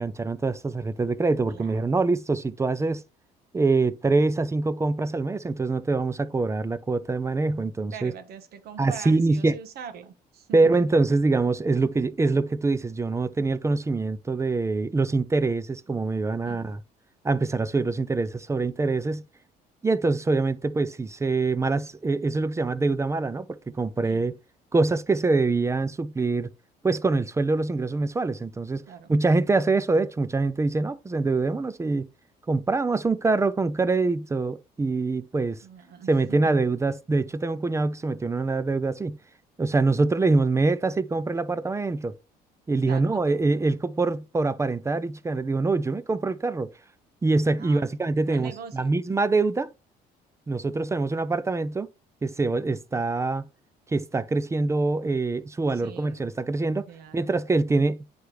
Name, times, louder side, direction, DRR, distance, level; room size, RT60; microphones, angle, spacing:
voice 1, 0.0-3.0 3.5-8.1 8.8-9.6 10.5-16.8 17.2-19.2 19.8-24.3 24.7-26.5 26.8-28.8 29.1-32.1 32.5-35.6 36.1-39.2 39.6-42.2 42.7-46.7 47.2-49.7 50.5-51.9 52.2-53.4 53.9-56.9 57.1-58.0, right 3 dB, 15° right, 0.5 m, -24 dB
voice 2, 1.5-1.8 7.9-10.7 16.4-16.7 24.0-24.3 28.9-29.1 35.6-36.5 42.9-43.2 47.6-47.8 48.2-48.9 55.7-56.2 56.9-57.3, right 7 dB, 70° right, 1.2 m, -42 dB
9.5 x 3.4 x 3.2 m
cardioid pair, 110°, 17 cm